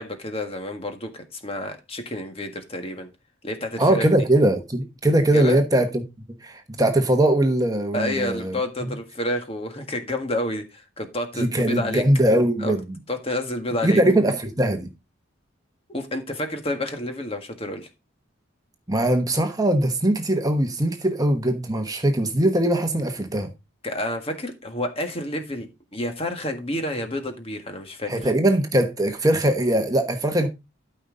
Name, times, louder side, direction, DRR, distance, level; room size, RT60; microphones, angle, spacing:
voice 1, 0.0-3.1 3.4-4.1 5.3-5.6 7.9-12.0 12.6-12.7 13.1-14.0 15.9-17.9 23.8-28.1, left 1 dB, 30° left, 1.6 m, -29 dB
voice 2, 3.8-6.0 6.4-8.6 11.4-13.0 13.8-14.9 18.9-23.5 28.1-30.5, right 1 dB, 20° right, 1.1 m, -21 dB
13.0 x 5.5 x 3.8 m
head